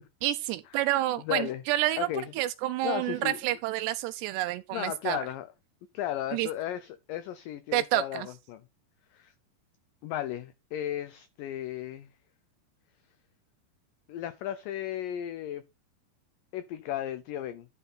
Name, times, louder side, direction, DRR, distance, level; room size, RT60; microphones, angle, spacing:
voice 1, 0.2-2.1 2.4-5.2 6.3-6.5 7.7-8.3, right 15 dB, 90° right, 2.8 m, -29 dB
voice 2, 1.3-1.6 2.0-2.3 2.8-3.4 4.7-5.5 5.9-8.6 9.1-9.3 10.0-12.1 14.1-15.6 16.5-17.7, left 12 dB, 80° left, 2.0 m, -35 dB
11.0 x 5.5 x 4.2 m
omnidirectional pair, 4.8 m